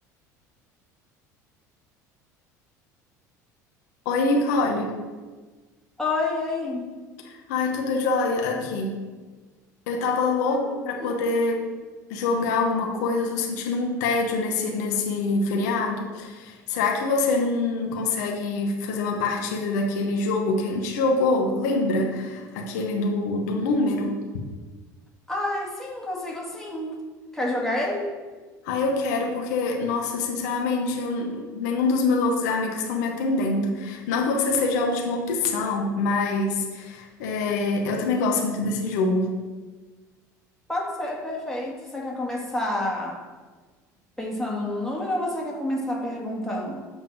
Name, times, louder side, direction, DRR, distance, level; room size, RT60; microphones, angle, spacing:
voice 1, 4.0-4.9 7.2-9.0 9.9-11.7 12.1-24.1 28.6-39.3, left 3 dB, 70° left, 1 dB, 1.0 m, -25 dB
voice 2, 6.0-6.9 10.5-10.6 11.0-11.2 25.3-26.9 27.3-28.1 40.7-43.2 44.2-46.8, left 1 dB, 5° left, -3 dB, 2.1 m, -29 dB
8.0 x 3.5 x 5.9 m, 1.4 s
hypercardioid pair, 70°, 9 cm